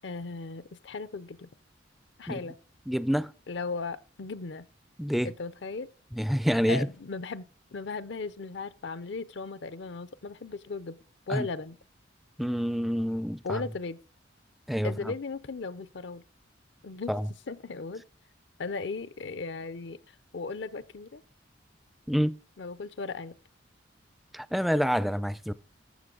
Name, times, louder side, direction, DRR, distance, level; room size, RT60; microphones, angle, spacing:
voice 1, 0.0-1.5 2.2-2.6 3.5-4.7 5.2-5.9 6.7-11.0 11.3-11.8 13.4-14.0 14.8-16.2 16.8-17.1 17.5-18.0 18.6-20.0 20.3-21.2 22.6-23.3, left 4 dB, 65° left, 0.5 m, -36 dB
voice 2, 2.9-3.3 5.0-5.3 6.1-6.9 11.3-11.5 12.4-13.6 14.7-15.1 17.1-17.3 22.1-22.3 24.3-25.5, equal, ahead, 0.4 m, -27 dB
14.5 x 6.7 x 3.8 m
head